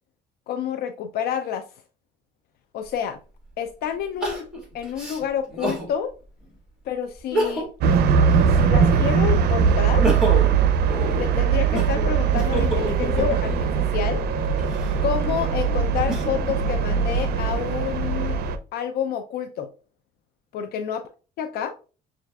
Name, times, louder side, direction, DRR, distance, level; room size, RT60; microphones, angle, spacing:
voice 1, 0.5-1.7 2.7-3.2 3.6-4.5 4.7-6.1 6.9-7.7 8.5-10.1 11.2-14.2 15.0-18.4 18.7-19.7 20.5-21.0 21.4-21.7, left 8 dB, 70° left, 0.4 m, -28 dB
Crying sobbing, 2.9-3.0 4.2-5.9 6.4-6.5 7.2-7.9 8.3-9.3 9.7-13.8 14.5-16.5 17.1-17.9, equal, 5° right, 1.8 m, -30 dB
sound 1, 7.8-18.6, right 6 dB, 70° right, 0.5 m, -21 dB
6.3 x 2.5 x 2.3 m
cardioid pair, 110°, 17 cm